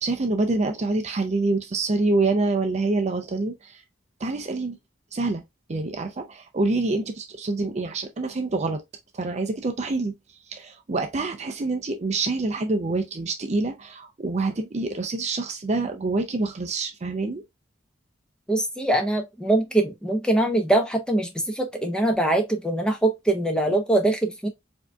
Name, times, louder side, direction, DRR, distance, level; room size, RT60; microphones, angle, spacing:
voice 1, 0.0-3.8 4.2-4.8 5.1-5.4 5.7-8.8 9.1-10.1 10.5-17.4, right 3 dB, 35° right, 0.5 m, -26 dB
voice 2, 18.5-24.5, right 1 dB, 5° left, 0.7 m, -23 dB
4.7 x 2.7 x 2.3 m
head